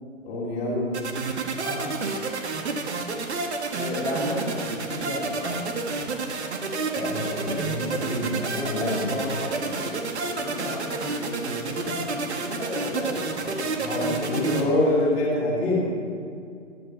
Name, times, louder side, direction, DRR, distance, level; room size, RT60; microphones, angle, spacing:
voice 1, 0.2-1.0 6.9-9.0 13.8-15.8, left 1 dB, 20° left, -5 dB, 3.2 m, -26 dB
sound 1, 0.9-14.6, right 3 dB, 55° right, 1.7 m, -30 dB
voice 2, 1.5-2.0 3.7-5.6 8.5-14.7, left 1 dB, 5° right, -11 dB, 2.8 m, -33 dB
15.5 x 11.0 x 6.2 m, 2.3 s
hypercardioid pair, 145°, 39 cm